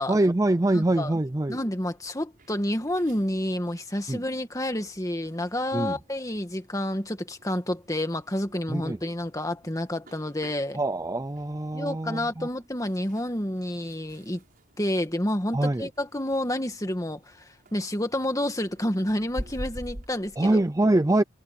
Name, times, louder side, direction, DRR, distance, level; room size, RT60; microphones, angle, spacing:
voice 1, 0.1-1.6 4.1-4.2 5.7-6.0 8.7-9.0 10.7-12.5 15.5-15.9 20.4-21.2, right 2 dB, 15° right, 0.4 m, -24 dB
voice 2, 0.7-1.1 1.5-10.8 11.7-14.4 14.8-20.6, left 1 dB, 15° left, 2.0 m, -29 dB
sound 1, 1.6-20.7, equal, 45° right, 6.0 m, -47 dB
head